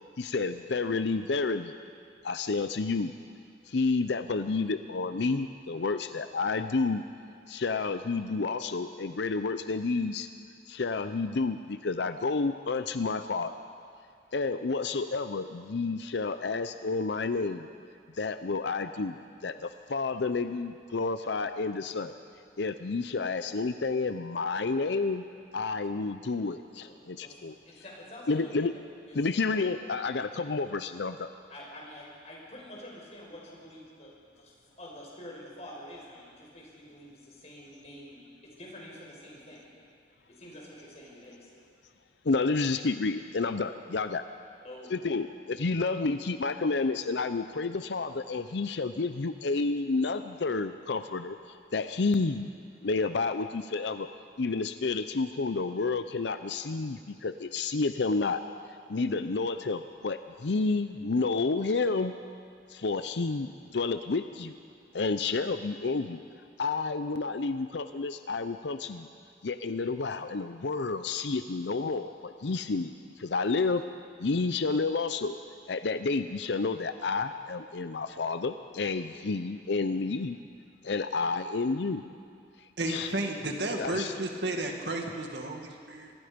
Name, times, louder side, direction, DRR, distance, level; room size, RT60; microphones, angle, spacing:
voice 1, 0.2-1.7 2.2-3.1 3.7-7.0 7.5-10.3 10.7-13.5 14.3-17.7 18.2-19.2 19.4-22.1 22.6-25.2 25.5-27.5 28.3-28.7 29.1-31.3 42.2-44.2 44.9-51.4 51.7-52.5 52.8-54.1 54.4-58.4 58.9-62.1 62.7-64.5 64.9-66.2 66.6-69.1 69.4-73.8 74.2-75.3 75.7-80.4 80.8-82.0 82.9-83.1 83.8-84.1, left 3 dB, 70° left, 10 dB, 0.6 m, -30 dB
voice 2, 26.8-28.5 29.1-29.2 31.5-34.5 34.8-39.6 40.3-41.5 44.6-45.1, left 1 dB, 35° left, -3 dB, 5.4 m, -47 dB
voice 3, 82.8-86.1, right 2 dB, 65° right, 2 dB, 2.2 m, -33 dB
25.0 x 20.0 x 5.2 m, 2.3 s
head